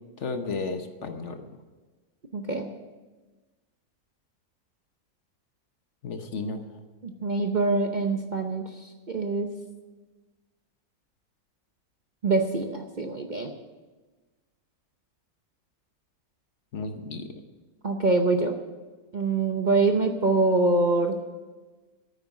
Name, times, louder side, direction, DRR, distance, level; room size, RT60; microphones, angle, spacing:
voice 1, 0.2-1.5 6.0-6.6 16.7-17.3, left 3 dB, 55° left, 7 dB, 1.2 m, -33 dB
voice 2, 2.3-2.7 7.0-9.5 12.2-13.5 17.8-18.6 19.1-21.2, right 3 dB, 40° right, 4 dB, 0.7 m, -25 dB
9.6 x 9.1 x 9.4 m, 1.3 s
omnidirectional pair, 1.6 m